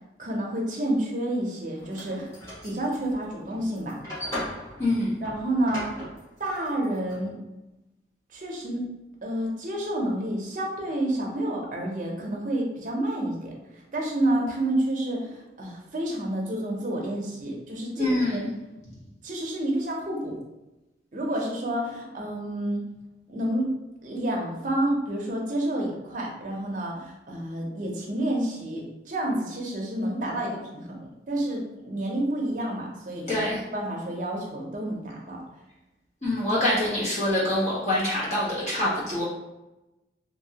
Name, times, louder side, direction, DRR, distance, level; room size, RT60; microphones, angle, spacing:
voice 1, 0.2-2.3 2.6-4.0 5.2-6.1 6.4-7.3 8.3-8.8 9.2-18.4 19.2-20.4 21.1-22.8 23.3-23.7 24.0-31.0 31.3-33.4 33.7-35.4, right 1 dB, 45° right, -1 dB, 0.6 m, -29 dB
sound 1, 1.8-7.1, left 1 dB, 15° left, 1.2 m, -38 dB
voice 2, 4.8-5.1 18.0-18.5 33.3-33.6 36.2-39.2, left 1 dB, 40° left, -7 dB, 1.1 m, -25 dB
2.7 x 2.7 x 2.8 m, 0.99 s
head